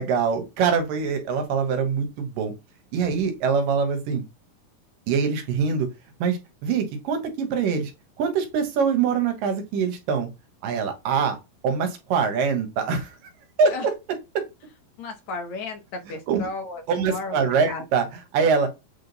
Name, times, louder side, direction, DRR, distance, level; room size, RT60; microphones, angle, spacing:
voice 1, 0.0-2.5 2.9-4.2 5.1-5.9 6.2-7.9 8.2-10.3 10.6-11.4 11.6-13.2 13.6-13.8 14.3-14.4 16.3-16.5 16.9-18.7, right 6 dB, 75° right, 2.8 m, -24 dB
voice 2, 15.0-17.8, left 3 dB, 65° left, 2.1 m, -34 dB
8.6 x 3.7 x 4.0 m
omnidirectional pair, 4.1 m